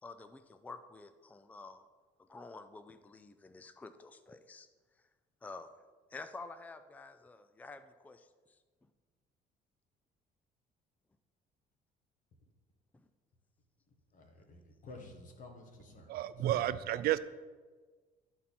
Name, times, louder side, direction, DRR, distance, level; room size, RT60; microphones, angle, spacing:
voice 1, 0.0-1.8 2.2-4.7 5.4-5.7 6.1-8.3 12.9-13.0, left 3 dB, 10° left, 10 dB, 0.4 m, -49 dB
voice 2, 14.1-16.1 16.4-16.5, left 2 dB, 50° left, 3 dB, 1.5 m, -52 dB
voice 3, 16.1-17.2, right 13 dB, 65° right, 15 dB, 0.4 m, -31 dB
12.5 x 4.3 x 4.2 m, 1.4 s
cardioid pair, 110°, 17 cm